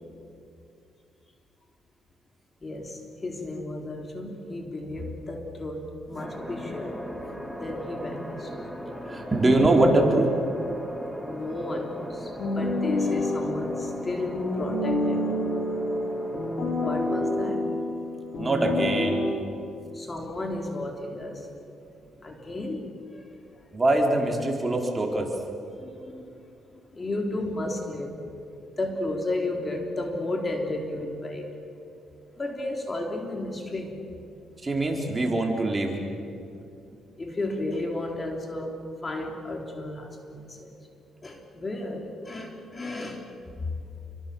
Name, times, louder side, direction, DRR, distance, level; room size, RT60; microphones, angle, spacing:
voice 1, 2.6-7.0 7.6-8.5 11.2-15.3 16.8-17.7 19.8-21.6 22.2-23.6 25.7-26.3 26.7-31.5 31.8-34.0 37.2-40.8 41.2-43.3 43.5-43.8, left 2 dB, 30° left, 2 dB, 3.7 m, -33 dB
sound 1, 6.2-17.6, equal, 5° left, 3.2 m, -38 dB
voice 2, 9.1-10.3 10.6-10.7 18.4-19.3 23.7-25.3 34.6-35.9, right 2 dB, 25° right, 1 dB, 4.4 m, -23 dB
sound 2, 12.4-19.3, left 1 dB, 60° left, 5.1 m, -28 dB
29.0 x 24.0 x 7.2 m, 2.6 s
cardioid pair, 90°, 0 cm